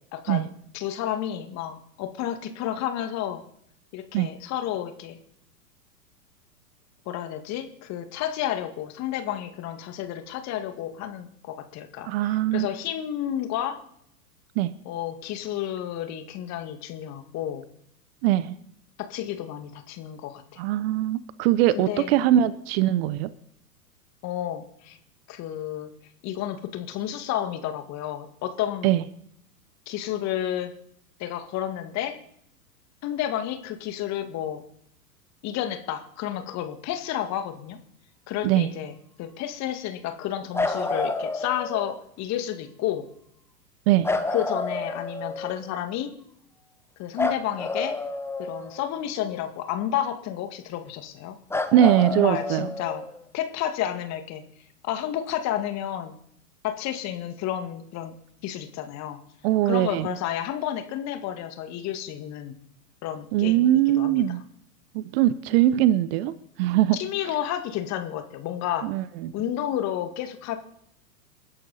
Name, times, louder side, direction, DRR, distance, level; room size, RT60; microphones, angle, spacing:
voice 1, 0.1-0.5 0.7-3.4 3.9-5.2 7.1-13.8 14.9-17.7 19.0-20.6 21.7-22.2 24.2-25.0 25.3-25.9 26.2-28.9 29.9-30.7 31.2-32.2 33.0-34.6 35.4-37.8 38.3-38.9 39.2-43.0 44.3-46.1 47.0-47.9 48.4-51.4 52.1-53.0 53.3-54.4 54.8-56.2 56.6-58.1 58.4-59.2 59.7-62.5 63.0-63.7 63.9-64.2 66.9-68.9 69.3-70.6, left 11 dB, 35° left, 8 dB, 2.0 m, -31 dB
voice 2, 12.0-12.7 14.6-14.7 18.2-18.6 20.6-23.3 28.8-29.0 38.4-38.7 43.9-44.1 51.7-52.7 59.4-60.1 63.3-64.4 64.9-67.0 68.8-69.3, right 13 dB, 40° right, 17 dB, 0.8 m, -22 dB
sound 1, 40.5-42.0 44.0-45.7 47.2-49.1 51.5-53.2 55.3-55.4, left 2 dB, 5° left, 1.2 m, -29 dB
28.0 x 11.0 x 4.1 m, 0.72 s
figure-of-eight pair, 100°, 48 cm